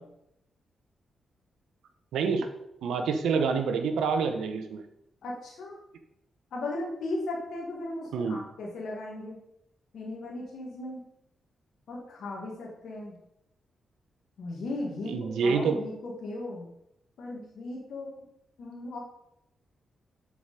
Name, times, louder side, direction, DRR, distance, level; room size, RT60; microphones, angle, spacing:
voice 1, 2.1-2.5 2.8-4.8 8.1-8.4 15.1-15.8, right 5 dB, 80° right, 7 dB, 0.9 m, -27 dB
voice 2, 5.2-5.8 6.5-9.4 9.9-11.0 11.9-13.1 14.4-16.7 17.2-18.2 18.6-19.0, left 2 dB, 75° left, -3 dB, 1.7 m, -37 dB
7.0 x 5.0 x 5.2 m, 0.81 s
supercardioid pair, 50°, 0 cm